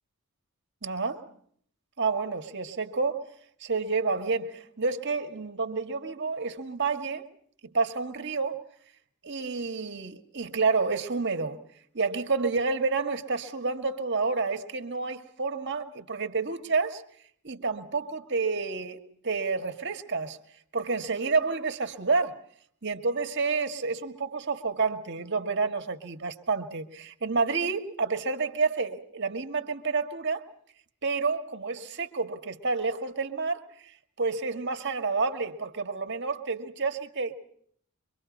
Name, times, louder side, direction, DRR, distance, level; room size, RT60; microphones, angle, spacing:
voice 1, 0.8-1.3 2.0-3.2 3.6-7.2 7.6-8.6 9.2-11.6 11.9-17.0 17.4-20.4 20.7-22.4 22.8-30.4 31.0-33.6 34.2-37.3, right 4 dB, 55° right, 1.9 m, -29 dB
24.5 x 24.5 x 5.3 m
head